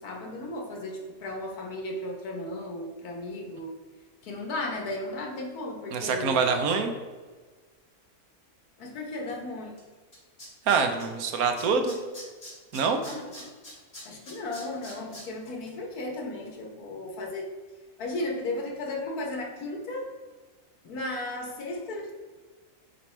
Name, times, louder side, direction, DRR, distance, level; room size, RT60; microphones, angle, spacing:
voice 1, 0.0-3.7 4.2-6.5 8.8-9.7 13.0-13.2 14.0-17.5 18.0-20.1 20.8-22.1, left 2 dB, 90° left, 1 dB, 1.6 m, -35 dB
voice 2, 5.9-6.9 10.7-12.0 12.7-13.0, right 5 dB, 80° right, 6 dB, 1.2 m, -25 dB
Tools, 9.8-9.9 10.1-11.3 11.6-15.2 15.6-15.7, left 1 dB, 35° left, 2.1 m, -43 dB
6.8 x 4.4 x 3.2 m, 1.4 s
omnidirectional pair, 1.5 m